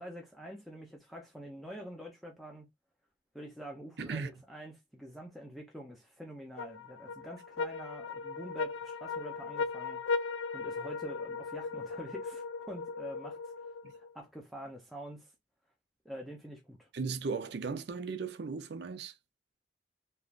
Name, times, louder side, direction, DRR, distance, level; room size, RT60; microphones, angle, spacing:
voice 1, 0.0-2.7 3.3-10.0 10.5-13.5 13.9-15.3 16.0-16.9, equal, ahead, 0.5 m, -46 dB
voice 2, 4.0-4.3 13.8-13.9 16.9-19.1, right 5 dB, 65° right, 0.4 m, -36 dB
sound 1, 6.6-14.1, left 4 dB, 85° left, 0.4 m, -37 dB
3.1 x 2.5 x 2.3 m
head